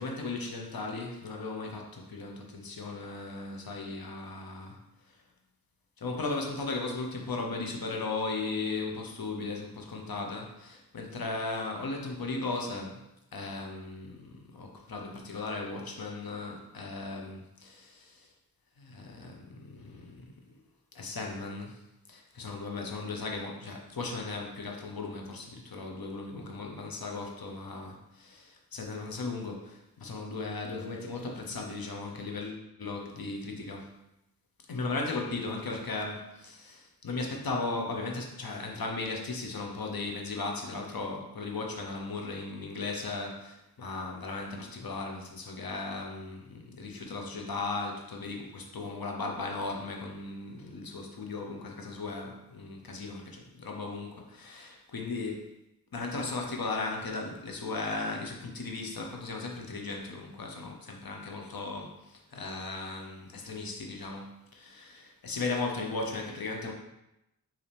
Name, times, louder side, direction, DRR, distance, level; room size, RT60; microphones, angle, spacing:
voice 1, 0.0-4.8 6.0-18.3 18.8-20.2 20.9-21.8 22.1-33.9 34.7-55.5 55.9-66.7, left 3 dB, 70° left, 1 dB, 0.8 m, -37 dB
5.1 x 2.8 x 3.4 m, 0.88 s
wide cardioid pair, 75°, 37 cm